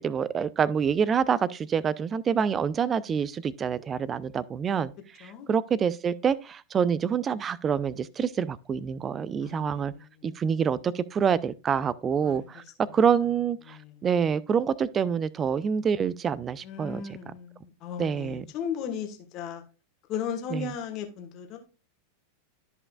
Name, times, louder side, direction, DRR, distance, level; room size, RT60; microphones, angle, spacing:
voice 1, 0.0-4.9 5.2-9.9 10.2-17.0 18.0-18.4 20.5-20.7, right 7 dB, 25° right, 0.5 m, -27 dB
voice 2, 9.4-10.0 12.2-12.5 13.7-13.9 16.6-19.6 20.1-21.6, left 7 dB, 35° left, 1.6 m, -36 dB
12.5 x 5.4 x 2.4 m
figure-of-eight pair, 90°, 0 cm